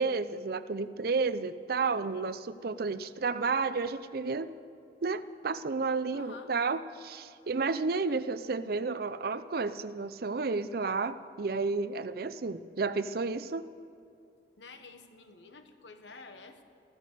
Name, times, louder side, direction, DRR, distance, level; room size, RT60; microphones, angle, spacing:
voice 1, 0.0-4.5 5.0-13.6, right 4 dB, 55° right, 14 dB, 0.5 m, -31 dB
voice 2, 6.1-6.5 14.6-16.6, left 3 dB, 85° left, 7 dB, 1.3 m, -50 dB
15.0 x 14.5 x 6.7 m, 2.5 s
head